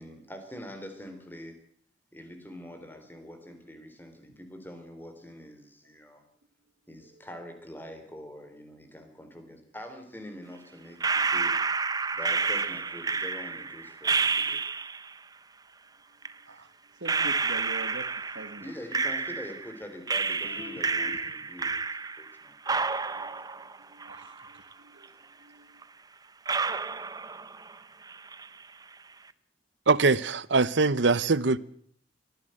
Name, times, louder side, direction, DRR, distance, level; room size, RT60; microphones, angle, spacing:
voice 1, 0.0-1.6 2.1-6.2 6.9-11.6 12.1-14.6 18.6-22.5, equal, 10° left, 3.8 m, -44 dB
sound 1, 11.0-15.1 16.2-16.3 17.1-19.7 20.1-22.4 22.7-24.7 25.0-25.1 25.8-25.9 26.5-27.8 28.1-28.6, right 4 dB, 20° right, 0.8 m, -30 dB
voice 2, 16.5-18.7 22.7-25.8, right 2 dB, 90° right, 1.8 m, -46 dB
Vehicle horn car horn honking, 20.4-21.2, left 4 dB, 85° left, 5.5 m, -42 dB
voice 3, 29.9-31.6, right 3 dB, 70° right, 0.8 m, -22 dB
23.0 x 15.0 x 7.8 m
head